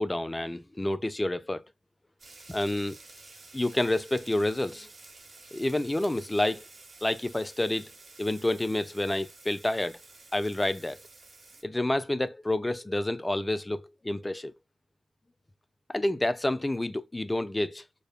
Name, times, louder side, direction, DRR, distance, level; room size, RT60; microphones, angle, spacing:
voice 1, 0.0-1.6 2.5-3.0 3.5-4.9 5.5-6.6 7.0-7.9 8.2-10.0 10.3-11.0 11.6-14.5 15.9-17.8, left 1 dB, 20° left, 0.4 m, -29 dB
sound 1, 2.2-11.6, right 3 dB, 50° right, 1.0 m, -51 dB
5.0 x 2.2 x 2.3 m
cardioid pair, 55°, 0 cm